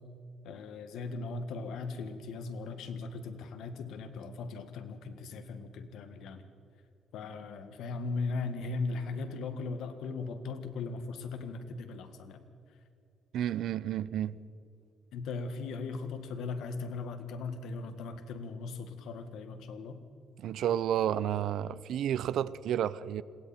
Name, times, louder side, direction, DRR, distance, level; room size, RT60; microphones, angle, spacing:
voice 1, 0.4-6.4 7.1-12.5 15.1-20.0, left 4 dB, 80° left, 1.9 m, -38 dB
voice 2, 13.3-14.4 20.4-23.2, right 10 dB, 75° right, 0.6 m, -31 dB
27.0 x 21.5 x 4.5 m
cardioid pair, 90°, 0 cm